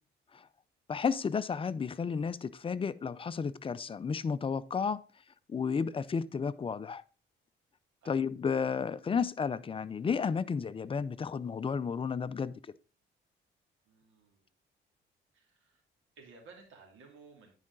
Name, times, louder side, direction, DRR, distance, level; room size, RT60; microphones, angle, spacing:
voice 1, 0.9-5.0 5.5-7.0 8.1-12.5, left 6 dB, 30° left, 0.4 m, -32 dB
voice 2, 13.9-14.5 15.3-15.8 16.2-17.5, right 4 dB, 80° right, 2.6 m, -56 dB
9.7 x 4.9 x 3.8 m
cardioid pair, 90°, 20 cm